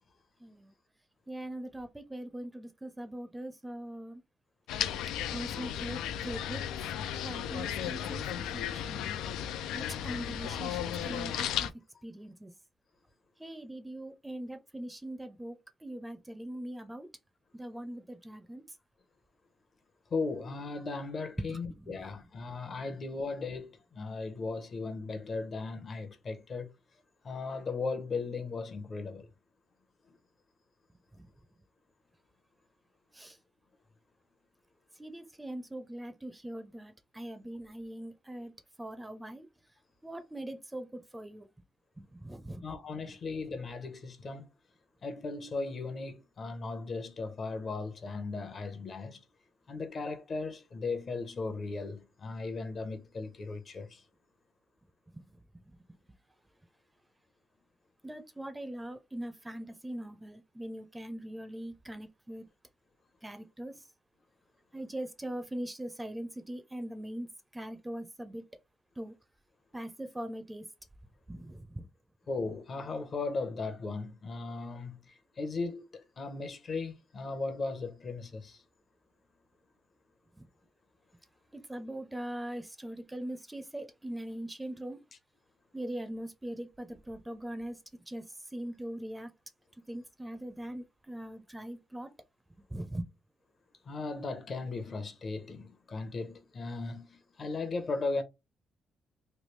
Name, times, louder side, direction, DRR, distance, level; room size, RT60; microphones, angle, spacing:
voice 1, 0.4-0.7 1.3-4.2 5.3-6.6 7.1-9.0 9.7-11.7 12.0-12.5 13.4-17.1 17.5-18.6 21.4-22.0 31.1-31.3 33.1-33.4 35.0-38.5 38.8-39.5 40.0-41.5 42.0-42.7 43.1-43.2 55.1-55.2 58.0-62.5 63.2-63.8 64.7-68.4 69.0-69.1 69.7-70.6 71.3-71.9 80.4-80.5 81.5-85.0 85.7-87.8 88.1-88.3 88.5-89.3 89.9-92.1 92.7-93.1, right 1 dB, 10° right, 0.5 m, -41 dB
sound 1, 4.7-11.7, left 10 dB, 90° left, 0.3 m, -35 dB
voice 2, 20.1-26.7 27.2-29.3 42.6-44.5 45.0-49.2 49.7-54.0 72.3-75.0 75.4-78.6 93.9-98.2, left 3 dB, 45° left, 0.8 m, -37 dB
3.2 x 2.4 x 3.1 m
cardioid pair, 90°, 0 cm